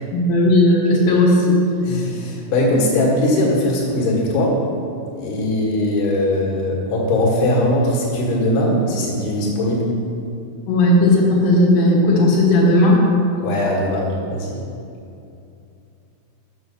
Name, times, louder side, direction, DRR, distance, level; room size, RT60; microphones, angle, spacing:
voice 1, 0.1-1.6 10.7-13.0, left 1 dB, 85° left, -6 dB, 2.0 m, -15 dB
voice 2, 1.8-4.6 5.2-9.9 13.4-14.6, left 1 dB, 60° left, -3 dB, 2.2 m, -20 dB
6.9 x 6.1 x 6.8 m, 2.6 s
omnidirectional pair, 5.9 m